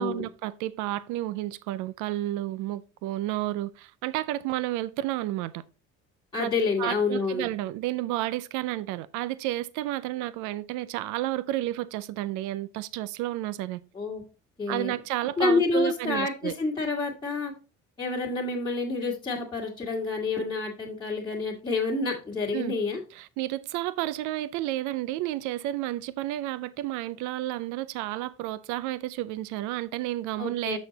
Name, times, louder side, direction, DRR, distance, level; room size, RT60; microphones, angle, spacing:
voice 1, 0.0-5.6 6.4-6.5 6.8-13.8 14.7-16.5 22.5-22.7 23.1-30.8, right 15 dB, 90° right, 0.5 m, -31 dB
voice 2, 6.3-7.5 13.9-14.2 14.6-14.9 15.4-17.5 18.0-23.0 30.4-30.8, left 3 dB, 15° left, 1.8 m, -28 dB
6.6 x 6.3 x 3.9 m
cardioid pair, 115°, 29 cm